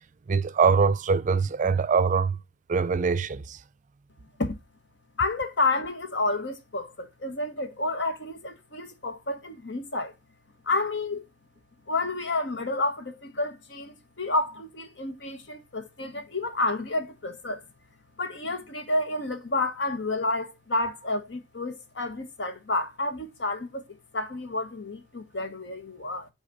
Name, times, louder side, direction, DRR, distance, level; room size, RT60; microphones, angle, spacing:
voice 1, 0.3-2.4 2.7-3.6, right 5 dB, 45° right, 0.4 m, -23 dB
voice 2, 5.2-10.1 10.6-11.3 11.9-17.6 18.2-26.3, left 2 dB, 80° left, 1.4 m, -30 dB
6.6 x 4.2 x 4.0 m
head